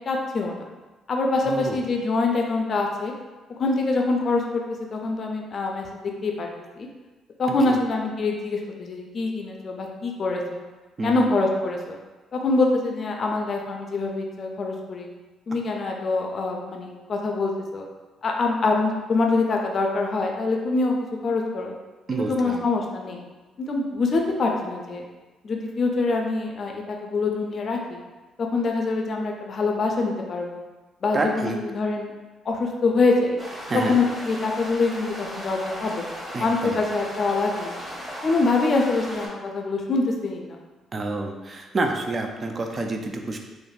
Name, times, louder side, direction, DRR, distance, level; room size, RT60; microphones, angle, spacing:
voice 1, 0.1-0.7 1.1-3.1 3.6-4.6 4.9-6.5 6.8-6.9 7.4-10.6 11.0-12.0 12.3-15.1 15.5-17.8 18.2-21.0 21.2-21.7 22.1-23.2 23.6-25.0 25.4-28.0 28.5-30.6 31.0-32.1 32.5-33.4 33.7-36.0 36.4-37.8 38.2-40.6, left 3 dB, 50° left, 1 dB, 0.4 m, -24 dB
voice 2, 1.4-1.8 7.7-7.8 11.0-11.3 22.1-22.7 31.1-31.6 33.7-34.0 36.3-36.8 40.9-43.4, right 2 dB, 40° right, 3 dB, 0.4 m, -28 dB
sound 1, 33.4-39.3, equal, 10° right, 1.0 m, -37 dB
3.1 x 2.0 x 2.4 m, 1.2 s
hypercardioid pair, 55°, 0 cm